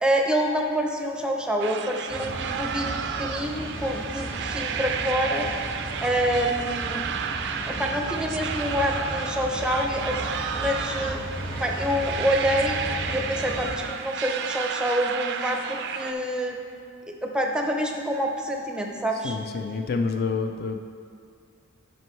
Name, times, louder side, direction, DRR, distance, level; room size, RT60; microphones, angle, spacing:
voice 1, 0.0-5.5 6.0-7.0 7.7-10.2 10.5-11.2 11.6-12.8 13.1-16.6 17.1-19.4, equal, 5° right, 1 dB, 0.6 m, -27 dB
sound 1, 1.6-16.1, right 7 dB, 55° right, 0.4 m, -32 dB
Rain, 2.1-13.8, equal, 25° left, 1.4 m, -35 dB
voice 2, 19.1-20.8, left 4 dB, 45° left, 5 dB, 0.4 m, -28 dB
11.0 x 5.3 x 3.1 m, 2.3 s
head